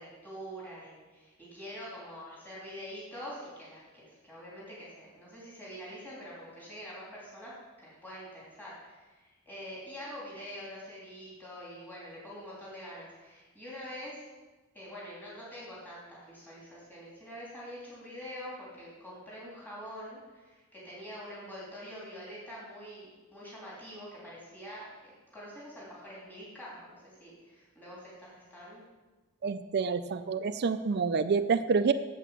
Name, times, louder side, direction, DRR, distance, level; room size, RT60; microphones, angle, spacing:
voice 1, 0.0-7.5 7.8-14.2 14.7-28.8, equal, 10° left, -7 dB, 3.3 m, -45 dB
voice 2, 29.4-31.9, right 5 dB, 50° right, 11 dB, 0.4 m, -28 dB
8.4 x 7.8 x 7.1 m, 1.2 s
head